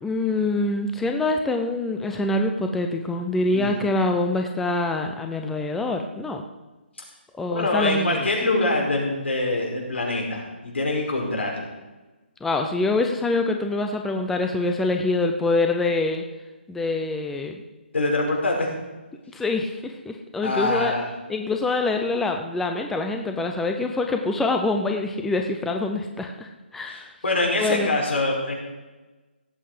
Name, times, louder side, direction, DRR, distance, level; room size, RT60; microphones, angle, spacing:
voice 1, 0.0-6.4 7.4-8.3 12.4-16.2 16.7-17.6 19.3-20.9 21.3-27.1 27.6-28.0, left 2 dB, 5° left, 4 dB, 0.5 m, -25 dB
voice 2, 7.5-11.6 17.9-18.7 20.4-21.1 26.9-28.6, left 2 dB, 80° left, -1 dB, 5.2 m, -24 dB
17.0 x 7.9 x 5.0 m, 1.2 s
hypercardioid pair, 165°, 6 cm